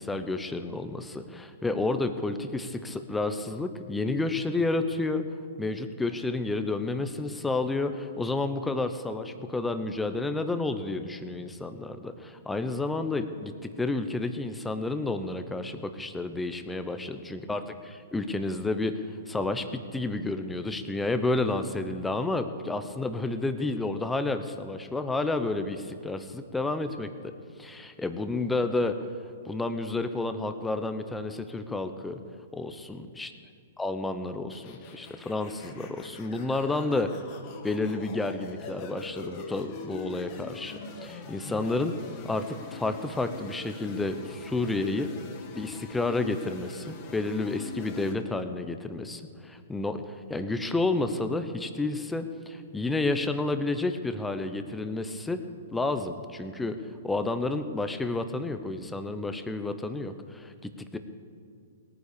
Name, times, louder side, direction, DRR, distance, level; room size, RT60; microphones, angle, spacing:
voice 1, 0.0-5.2 5.6-27.3 27.6-29.0 29.4-32.2 32.5-33.3 33.8-37.1 37.6-42.0 42.2-45.1 45.6-55.4 55.7-56.8 57.0-61.0, left 2 dB, 5° left, 9 dB, 0.9 m, -30 dB
sound 1, 34.5-48.1, left 4 dB, 35° left, 2.0 m, -43 dB
18.0 x 9.4 x 6.9 m, 2.3 s
hypercardioid pair, 135°, 0 cm